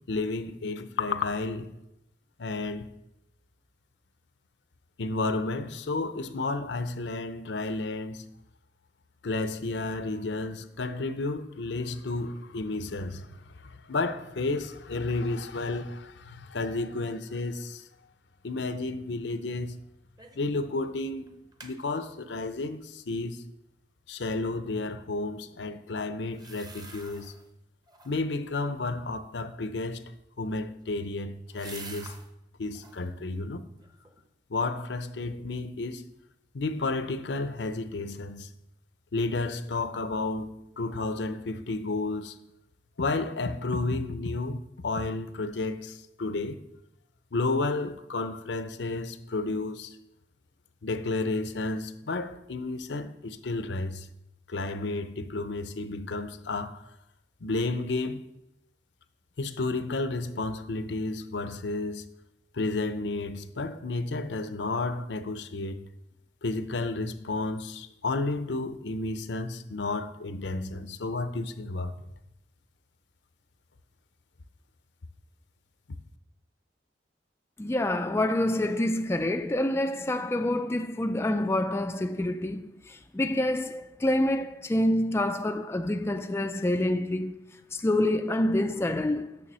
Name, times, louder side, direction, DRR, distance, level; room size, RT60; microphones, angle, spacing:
voice 1, 0.1-1.7 2.4-3.0 5.0-8.2 9.2-17.8 18.4-19.8 20.3-21.3 21.6-23.4 24.1-27.3 28.0-30.0 30.4-32.2 32.6-33.7 34.5-36.0 36.5-38.5 39.1-42.4 43.0-46.6 47.3-50.0 50.8-54.1 54.5-56.9 57.4-58.2 59.4-62.1 62.5-65.8 66.4-72.0, left 3 dB, 75° left, 0.7 m, -32 dB
sound 1, 20.2-20.5 20.8-20.9 21.3-21.8 26.3-27.5 27.9-28.4 30.3-32.3 32.7-33.1 33.6-34.3 34.6-34.7, right 3 dB, 20° right, 0.9 m, -48 dB
voice 2, 77.6-89.4, left 1 dB, 15° left, 0.3 m, -27 dB
7.0 x 6.8 x 6.2 m
head